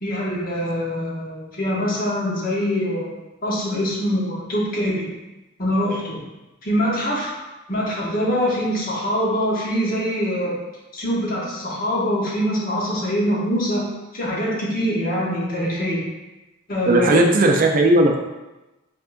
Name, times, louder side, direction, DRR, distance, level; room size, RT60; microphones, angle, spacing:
voice 1, 0.0-5.1 5.6-6.2 6.6-7.3 7.7-10.6 10.9-13.8 14.1-16.0 16.7-17.2, equal, 45° left, -4 dB, 1.0 m, -24 dB
voice 2, 16.9-18.2, right 2 dB, 40° right, 2 dB, 0.4 m, -16 dB
4.6 x 3.6 x 2.5 m, 1.1 s
head